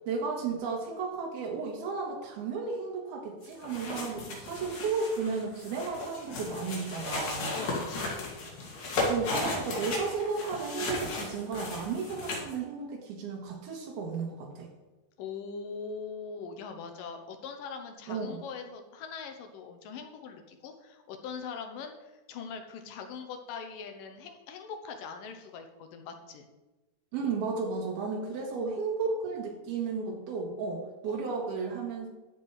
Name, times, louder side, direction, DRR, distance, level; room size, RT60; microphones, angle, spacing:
voice 1, 0.1-7.5 9.1-14.7 18.1-18.4 27.1-32.1, right 4 dB, 90° right, 0 dB, 3.5 m, -33 dB
sound 1, 3.4-12.5, left 2 dB, 55° left, 3.4 m, -35 dB
voice 2, 7.5-8.4 15.2-26.5 28.2-28.7 31.1-31.3, left 5 dB, 70° left, 5 dB, 2.5 m, -42 dB
11.5 x 7.4 x 4.8 m, 1.1 s
omnidirectional pair, 4.3 m